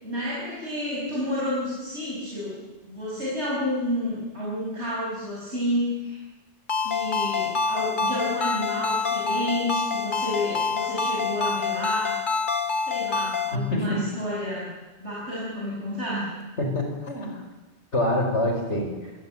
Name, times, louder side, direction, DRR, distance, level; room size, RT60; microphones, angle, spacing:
voice 1, 0.0-2.6 2.8-6.2 6.8-12.2 12.8-14.7 15.0-16.3, left 1 dB, 75° right, -6 dB, 6.3 m, -30 dB
Ringtone, 6.7-13.6, left 5 dB, 45° left, 1.5 m, -26 dB
voice 2, 13.5-14.0 16.6-17.4 17.9-19.1, left 1 dB, 80° left, 3 dB, 5.5 m, -26 dB
28.5 x 16.5 x 9.2 m, 1.2 s
omnidirectional pair, 1.2 m